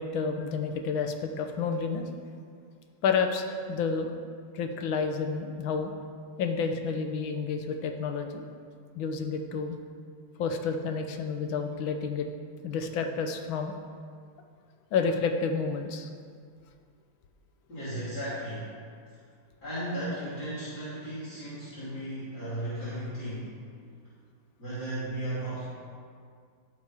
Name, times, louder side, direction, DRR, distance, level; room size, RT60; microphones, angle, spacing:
voice 1, 0.0-2.1 3.0-4.1 4.5-5.9 6.4-8.5 8.9-9.8 10.4-12.3 12.6-13.7 14.9-16.1, left 5 dB, 85° left, 5 dB, 1.6 m, -30 dB
voice 2, 17.7-18.7 19.6-23.6 24.6-25.6, right 1 dB, 55° left, -12 dB, 3.5 m, -35 dB
15.0 x 5.2 x 4.8 m, 2.2 s
omnidirectional pair, 2.1 m